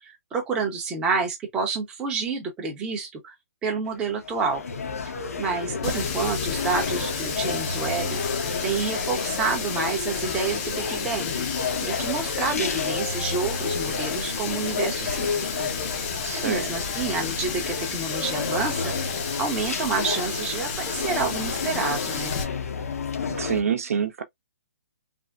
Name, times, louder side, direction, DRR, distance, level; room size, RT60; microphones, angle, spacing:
voice 1, 0.0-3.3 3.6-4.6 5.4-8.2 8.6-11.4 11.8-16.1 16.3-18.9 19.4-22.3, right 5 dB, 10° right, 0.7 m, -29 dB
sound 1, 3.9-23.6, left 5 dB, 70° left, 0.9 m, -31 dB
Water tap faucet, 5.8-22.4, left 5 dB, 20° left, 0.7 m, -33 dB
voice 2, 16.2-16.7 23.4-24.2, right 7 dB, 65° right, 0.8 m, -26 dB
3.4 x 2.1 x 2.4 m
hypercardioid pair, 165°, 8 cm